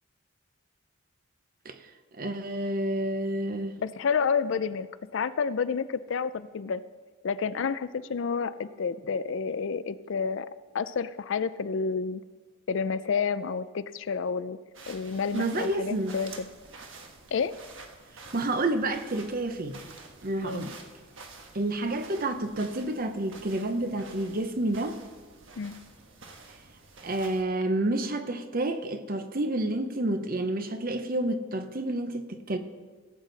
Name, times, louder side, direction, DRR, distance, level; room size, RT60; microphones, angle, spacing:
voice 1, 2.2-3.7 15.3-16.2 18.3-19.8 20.2-20.8 21.5-25.0 27.0-32.6, right 1 dB, 45° right, 0.8 m, -29 dB
voice 2, 3.8-4.9 5.1-6.8 7.2-10.5 10.7-12.2 12.7-14.6 14.9-16.5 17.3-17.5 20.4-20.7 25.6-25.8, left 5 dB, 60° left, 0.4 m, -29 dB
sound 1, 14.7-27.4, right 3 dB, 65° right, 1.3 m, -49 dB
17.0 x 8.1 x 4.0 m
head